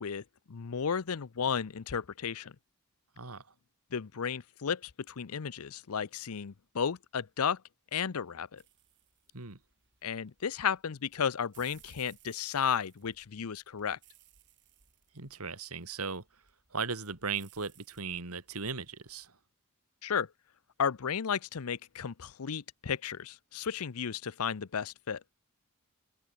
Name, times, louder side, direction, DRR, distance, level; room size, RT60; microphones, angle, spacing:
voice 1, 0.0-2.5 3.9-7.6 7.9-8.6 10.0-14.0 20.0-20.3 20.8-25.2, left 7 dB, 85° left, 0.6 m, -33 dB
sound 1, 8.6-19.3, right 10 dB, 55° right, 7.7 m, -63 dB
voice 2, 15.1-16.2 16.7-19.3, right 5 dB, 85° right, 2.5 m, -37 dB
head